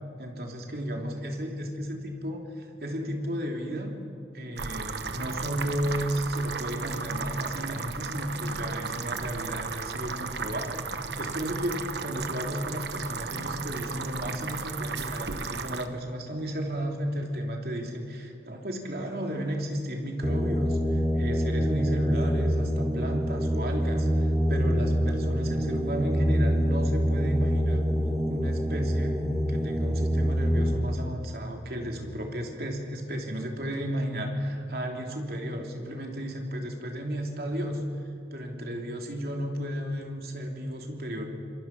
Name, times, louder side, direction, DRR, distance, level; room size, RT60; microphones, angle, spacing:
voice 1, 0.2-3.9 4.3-27.8 28.3-29.2 29.5-37.8 38.3-41.3, equal, 60° right, 1 dB, 3.2 m, -33 dB
sound 1, 4.6-15.9, right 5 dB, 80° right, 1.2 m, -35 dB
sound 2, 20.2-30.8, equal, 5° right, 2.5 m, -26 dB
26.0 x 23.0 x 6.1 m, 2.6 s
head